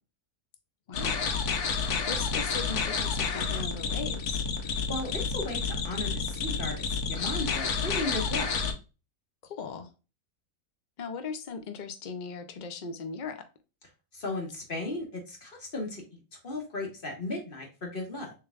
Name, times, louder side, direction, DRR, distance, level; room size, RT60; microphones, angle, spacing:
voice 1, 0.9-1.3 2.1-4.4 9.4-9.9 11.0-13.5, left 5 dB, 90° left, 8 dB, 0.4 m, -38 dB
sound 1, 0.9-8.7, left 5 dB, 70° left, 1.3 m, -30 dB
voice 2, 4.7-8.5 14.1-16.0 16.4-18.3, left 2 dB, 35° left, 1 dB, 1.6 m, -35 dB
6.6 x 3.4 x 2.4 m, 0.31 s
omnidirectional pair, 1.7 m